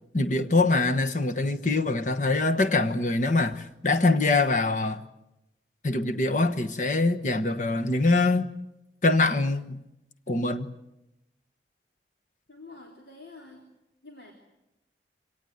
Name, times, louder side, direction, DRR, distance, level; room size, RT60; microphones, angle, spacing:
voice 1, 0.1-5.0 5.8-8.5 9.0-9.8 10.3-10.7, left 2 dB, 45° left, 1.2 m, -24 dB
voice 2, 12.5-13.6 14.0-14.3, left 3 dB, 70° left, 3.6 m, -47 dB
25.0 x 18.0 x 9.3 m
head